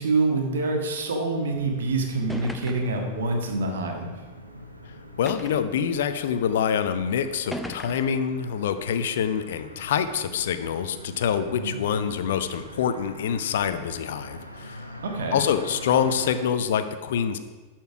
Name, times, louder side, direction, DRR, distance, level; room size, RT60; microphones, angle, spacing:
voice 1, 0.0-4.1 11.5-11.8 15.0-15.4, right 3 dB, 60° right, 2 dB, 1.5 m, -26 dB
sound 1, 1.5-16.4, left 1 dB, 85° right, 0.9 m, -43 dB
sound 2, 1.7-1.8 2.3-3.1 4.0-4.1 5.3-5.8 6.7-6.8 7.5-8.3, left 1 dB, ahead, 0.5 m, -37 dB
voice 2, 5.2-14.8 15.3-17.4, left 8 dB, 60° left, 10 dB, 0.6 m, -26 dB
11.5 x 4.5 x 5.9 m, 1.3 s
figure-of-eight pair, 90°, 0 cm